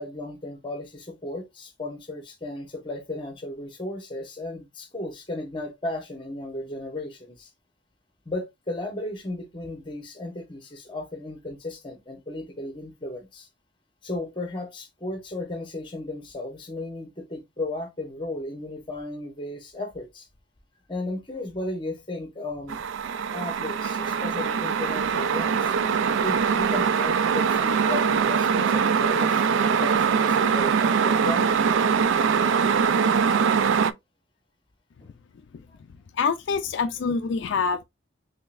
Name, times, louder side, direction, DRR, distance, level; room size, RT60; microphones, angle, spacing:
voice 1, 0.0-7.5 8.2-13.5 14.0-20.3 20.9-22.9 23.3-25.7 26.2-31.5 35.0-35.1 35.7-35.8, left 2 dB, 25° left, 1.1 m, -35 dB
sound 1, 22.7-33.9, right 6 dB, 75° right, 0.3 m, -22 dB
voice 2, 36.1-37.8, left 5 dB, 70° left, 0.3 m, -26 dB
3.8 x 3.4 x 2.5 m
head